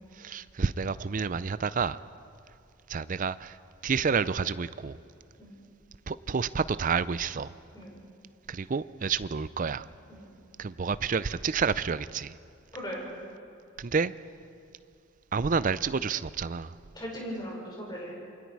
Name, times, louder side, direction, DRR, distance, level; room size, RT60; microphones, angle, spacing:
voice 1, 0.2-2.0 2.9-3.6 3.8-5.0 6.1-7.5 8.5-9.9 10.6-12.3 13.8-14.1 15.3-16.7, right 5 dB, 40° right, 0.4 m, -29 dB
voice 2, 12.7-13.1 16.9-18.1, equal, 20° left, 5.4 m, -38 dB
28.0 x 23.5 x 4.8 m
head